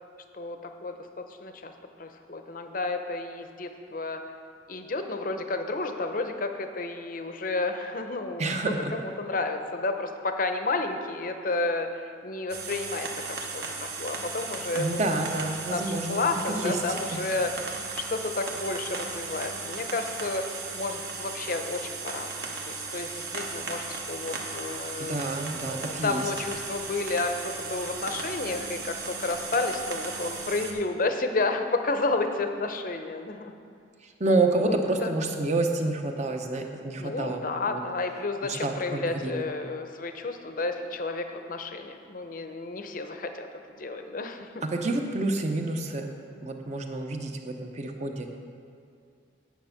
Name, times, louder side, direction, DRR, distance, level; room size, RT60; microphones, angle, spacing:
voice 1, 0.3-1.7 2.0-4.2 4.7-8.5 8.9-15.2 15.7-17.5 17.9-25.2 25.7-33.5 34.5-34.7 35.0-35.1 37.0-43.5 43.8-44.5, left 3 dB, 45° left, 6 dB, 0.6 m, -31 dB
voice 2, 8.4-8.9 14.7-16.8 17.1-17.2 25.0-26.3 34.0-37.8 38.4-39.4 44.7-46.1 46.4-48.3, right 2 dB, 35° right, 4 dB, 0.8 m, -29 dB
sound 1, 12.5-30.7, right 4 dB, 55° right, 1.1 m, -36 dB
9.4 x 6.7 x 5.7 m, 2.4 s
head